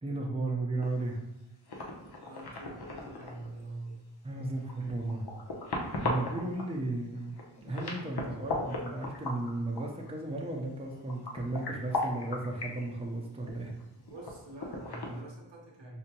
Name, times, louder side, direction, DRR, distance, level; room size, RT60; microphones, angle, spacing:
voice 1, 0.0-1.2 4.2-5.2 6.0-7.3 7.6-13.7, right 2 dB, 15° right, -1 dB, 0.7 m, -34 dB
sound 1, 0.8-1.2 1.7-3.6 4.4-6.7 7.3-10.1 10.3-10.4 10.7-12.8 13.4-15.2, left 2 dB, 60° left, 0.9 m, -37 dB
voice 2, 2.2-4.1 13.9-16.0, right 2 dB, 75° right, -2 dB, 1.0 m, -45 dB
5.2 x 2.1 x 2.9 m, 0.93 s
cardioid pair, 45°, 44 cm